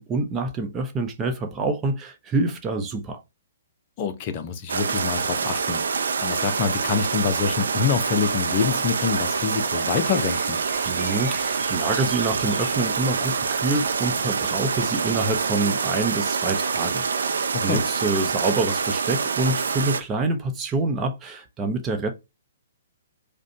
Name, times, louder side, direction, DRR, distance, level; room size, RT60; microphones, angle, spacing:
voice 1, 0.0-3.2 10.8-22.1, right 3 dB, 20° right, 0.8 m, -26 dB
voice 2, 4.0-10.6 17.5-17.8, left 6 dB, 35° left, 0.7 m, -26 dB
sound 1, 4.7-20.0, right 5 dB, 65° right, 0.5 m, -26 dB
sound 2, 6.5-15.5, left 1 dB, 10° left, 2.0 m, -45 dB
4.9 x 2.3 x 2.8 m
figure-of-eight pair, 120°, 0 cm